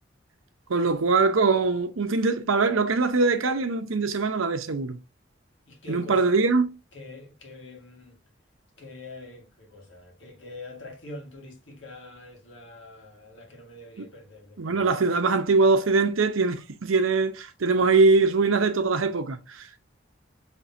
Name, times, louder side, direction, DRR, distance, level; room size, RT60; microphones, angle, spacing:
voice 1, 0.7-5.0 5.9-6.7 14.6-19.7, right 4 dB, 90° right, 0.7 m, -22 dB
voice 2, 5.7-6.3 6.9-8.2 8.8-14.8, left 2 dB, 70° left, 1.6 m, -44 dB
5.8 x 3.3 x 2.6 m
head